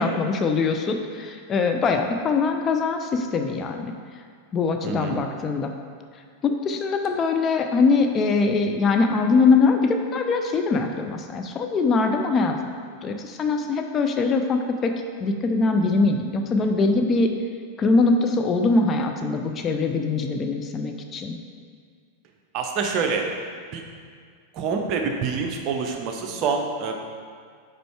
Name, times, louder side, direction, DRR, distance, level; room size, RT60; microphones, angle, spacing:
voice 1, 0.0-3.9 4.5-5.7 6.4-12.5 13.0-14.9 15.2-17.3 17.8-21.4, left 4 dB, 25° left, 4 dB, 0.4 m, -22 dB
voice 2, 4.8-5.2 22.5-23.3 23.7-23.8 24.5-26.9, right 5 dB, 40° right, 3 dB, 0.7 m, -26 dB
5.2 x 4.4 x 4.6 m, 2.1 s
figure-of-eight pair, 90°, 0 cm